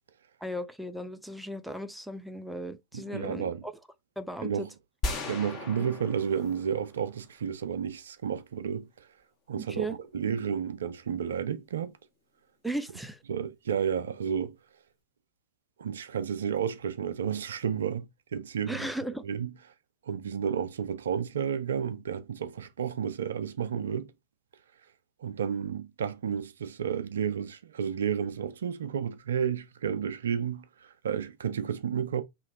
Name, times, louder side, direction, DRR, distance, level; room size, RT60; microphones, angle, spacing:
voice 1, 0.4-3.7 4.2-4.7 9.7-10.0 12.6-13.2 18.7-19.2, right 1 dB, ahead, 0.4 m, -36 dB
voice 2, 2.9-3.6 4.4-4.7 5.2-8.9 9.5-9.9 10.1-11.9 13.3-14.5 15.8-18.9 19.2-19.5 20.1-24.1 25.2-32.2, right 7 dB, 65° right, 0.4 m, -31 dB
sound 1, 5.0-7.3, left 2 dB, 35° left, 1.2 m, -36 dB
2.9 x 2.8 x 4.0 m
figure-of-eight pair, 90°, 0 cm